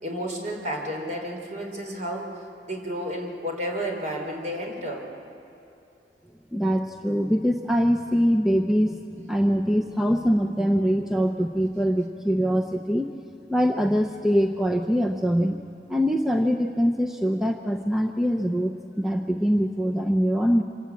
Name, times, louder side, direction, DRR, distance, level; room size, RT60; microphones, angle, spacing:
voice 1, 0.0-5.0, equal, 45° right, 1 dB, 3.9 m, -32 dB
voice 2, 6.5-9.0 9.3-13.1 13.5-15.6 15.9-20.6, equal, 5° right, 4 dB, 0.6 m, -23 dB
26.5 x 13.5 x 8.4 m, 2.9 s
head